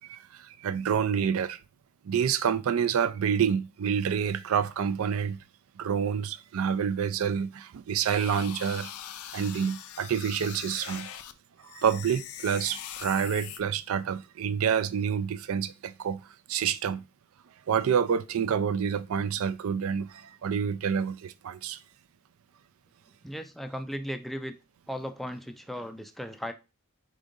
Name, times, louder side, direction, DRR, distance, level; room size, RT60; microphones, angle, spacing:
voice 1, 0.1-1.6 2.0-5.4 5.8-8.9 9.3-11.1 11.6-16.2 16.5-17.0 17.7-21.8, right 7 dB, 75° right, 0.4 m, -28 dB
sound 1, 8.1-11.3 11.6-13.6, left 10 dB, 85° left, 0.4 m, -42 dB
voice 2, 23.2-24.5 24.9-26.5, equal, ahead, 0.3 m, -36 dB
5.0 x 3.6 x 2.5 m
head